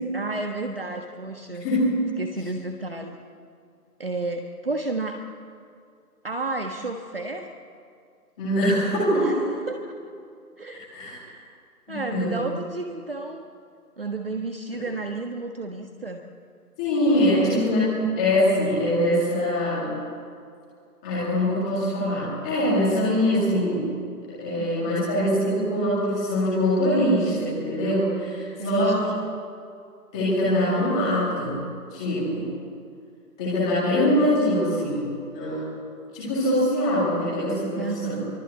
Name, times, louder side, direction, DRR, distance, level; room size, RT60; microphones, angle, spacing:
voice 1, 0.1-1.7 2.2-3.2 4.0-5.2 6.2-7.5 9.1-10.1 10.6-11.4 11.9-13.4 14.0-16.2 17.3-17.6 24.6-25.0 28.6-29.1 37.8-38.2, right 3 dB, 35° right, 4 dB, 1.5 m, -32 dB
voice 2, 1.6-2.0 8.4-9.4 10.9-11.2 11.9-12.5 16.8-20.0 21.0-23.9 24.3-29.1 30.1-31.6 31.9-32.5 33.4-35.1 35.3-35.7 36.1-38.2, left 1 dB, 5° left, -9 dB, 2.0 m, -23 dB
25.0 x 24.0 x 8.2 m, 2.3 s
figure-of-eight pair, 175°, 48 cm